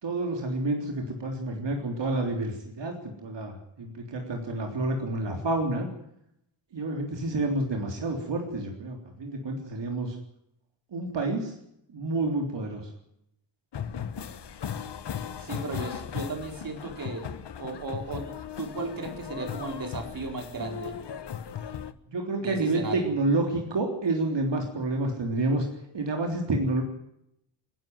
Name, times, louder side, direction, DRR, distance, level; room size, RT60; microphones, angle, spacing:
voice 1, 0.0-5.9 6.7-10.2 10.9-11.5 11.9-12.8 22.1-25.7 25.9-26.8, right 2 dB, 70° right, 2 dB, 3.6 m, -29 dB
sound 1, 13.7-21.9, left 8 dB, 65° left, 1.3 m, -37 dB
voice 2, 15.4-17.3 17.6-18.3 18.6-21.0 22.4-23.1, right 3 dB, 50° right, 3 dB, 4.4 m, -35 dB
28.5 x 11.5 x 9.4 m, 0.78 s
wide cardioid pair, 170°, 45 cm